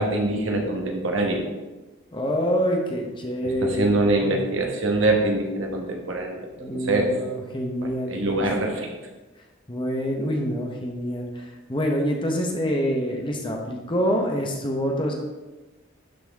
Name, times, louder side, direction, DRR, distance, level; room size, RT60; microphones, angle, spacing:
voice 1, 0.0-1.4 3.4-7.1 7.8-8.9, right 2 dB, 70° right, 1 dB, 1.3 m, -24 dB
voice 2, 2.1-3.9 4.2-4.4 6.6-8.5 9.7-15.1, equal, 25° left, 1 dB, 0.9 m, -26 dB
11.5 x 4.1 x 3.6 m, 1.1 s
head